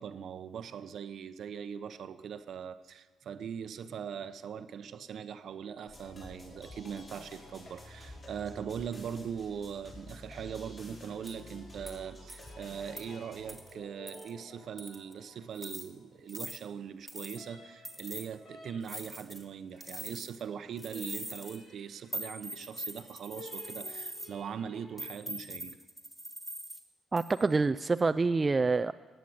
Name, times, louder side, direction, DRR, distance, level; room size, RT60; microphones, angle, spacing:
voice 1, 0.0-25.8, right 7 dB, 65° right, 0.8 m, -41 dB
sound 1, 5.9-25.2, left 1 dB, 70° left, 3.6 m, -57 dB
sound 2, 5.9-16.0, left 1 dB, 35° left, 5.7 m, -51 dB
sound 3, 11.3-11.4 11.9-12.0 12.3-12.5 13.0-13.1 13.5-13.7 14.1-14.3 14.8-15.1 15.5-15.9 16.3-16.6 17.1-17.4 17.8-18.3 18.8-19.4 19.8-20.4 20.8-21.6 22.1-24.3 25.0-26.8 27.2-27.5, right 1 dB, 5° left, 1.9 m, -42 dB
voice 2, 27.1-28.9, right 3 dB, 25° right, 0.4 m, -27 dB
16.5 x 9.2 x 7.8 m
cardioid pair, 90°, 0 cm